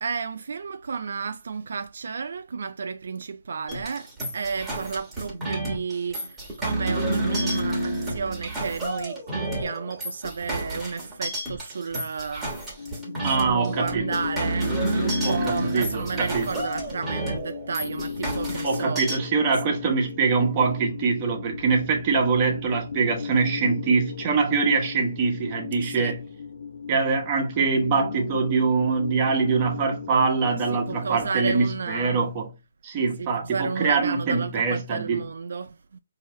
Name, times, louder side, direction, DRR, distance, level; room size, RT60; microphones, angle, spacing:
voice 1, 0.0-12.8 13.2-19.0 25.8-26.1 30.5-32.2 33.2-36.0, right 5 dB, 65° right, 0.3 m, -32 dB
sound 1, 3.7-19.2, right 1 dB, 5° right, 1.3 m, -30 dB
sound 2, 12.8-31.3, left 5 dB, 70° left, 0.7 m, -36 dB
voice 2, 13.2-14.1 15.2-16.4 18.6-26.2 26.9-32.5 32.8-35.2, right 4 dB, 25° right, 1.0 m, -24 dB
4.5 x 2.8 x 3.0 m
hypercardioid pair, 165°, 0 cm